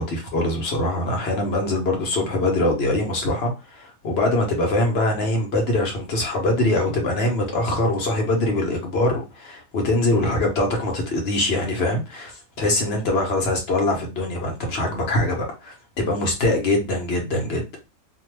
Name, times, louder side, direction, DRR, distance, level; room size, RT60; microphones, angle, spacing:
voice 1, 0.0-17.6, left 2 dB, 50° left, 1 dB, 1.1 m, -23 dB
2.6 x 2.2 x 3.2 m, 0.27 s
omnidirectional pair, 1.5 m